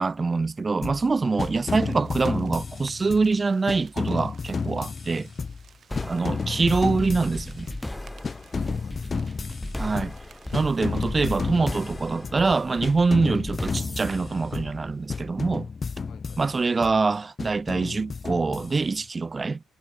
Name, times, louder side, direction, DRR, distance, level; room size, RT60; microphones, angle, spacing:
voice 1, 0.0-5.3 6.0-7.7 9.8-10.1 10.5-15.7 16.4-19.6, right 4 dB, 30° right, 0.5 m, -24 dB
sound 1, 0.8-1.1 1.4-3.3 3.7-5.7 6.0-7.9 8.2-10.2 10.5-12.5 12.8-14.8 15.1-17.0 17.4-19.0, left 5 dB, 35° left, 1.3 m, -32 dB
sound 2, 1.5-11.9, right 7 dB, 50° right, 7.3 m, -56 dB
voice 2, 5.9-6.6 8.3-9.4 13.3-13.4 16.1-16.5, left 10 dB, 70° left, 4.9 m, -52 dB
sound 3, 5.9-15.3, left 1 dB, 10° left, 2.4 m, -37 dB
cardioid pair, 90°, 0 cm